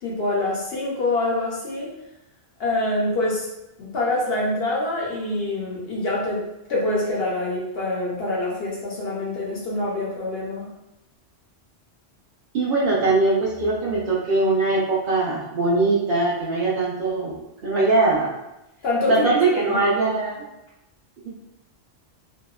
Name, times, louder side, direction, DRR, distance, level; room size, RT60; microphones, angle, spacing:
voice 1, 0.0-1.9 2.6-3.5 3.8-6.4 6.7-10.7 18.8-19.8, left 2 dB, 60° left, -4 dB, 0.7 m, -25 dB
voice 2, 12.5-18.3 19.1-20.4, right 3 dB, 60° right, -6 dB, 0.6 m, -21 dB
2.8 x 2.1 x 2.2 m, 0.91 s
omnidirectional pair, 1.3 m